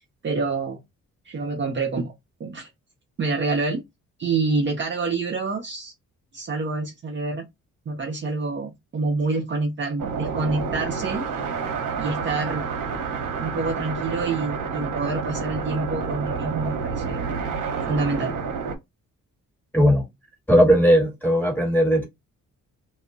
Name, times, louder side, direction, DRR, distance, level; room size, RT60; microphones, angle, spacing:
voice 1, 0.2-0.8 1.3-2.1 2.4-2.7 3.2-3.8 4.2-5.9 6.3-7.5 7.9-11.3 12.0-12.6 13.4-17.2 17.9-18.3, right 3 dB, 35° right, 0.5 m, -27 dB
sound 1, 10.0-18.8, right 5 dB, 75° right, 0.8 m, -29 dB
voice 2, 19.7-20.1 20.5-22.1, equal, 5° left, 1.3 m, -17 dB
2.2 x 2.0 x 3.8 m
cardioid pair, 130°, 31 cm